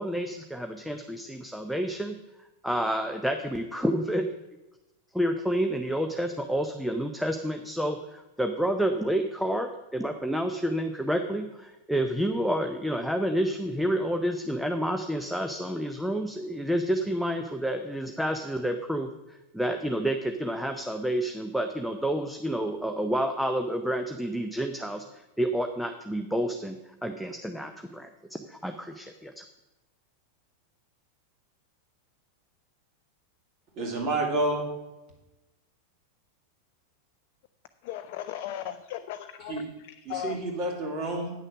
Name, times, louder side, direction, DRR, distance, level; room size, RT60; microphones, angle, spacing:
voice 1, 0.0-2.2 2.6-4.3 5.1-26.8 27.0-29.4, equal, ahead, 5 dB, 0.6 m, -29 dB
voice 2, 33.8-34.7 39.5-39.6 40.1-41.3, right 2 dB, 40° right, 0 dB, 2.6 m, -29 dB
voice 3, 37.8-40.4, left 11 dB, 45° left, 9 dB, 0.4 m, -37 dB
8.9 x 6.5 x 6.3 m, 1.0 s
figure-of-eight pair, 90°, 0 cm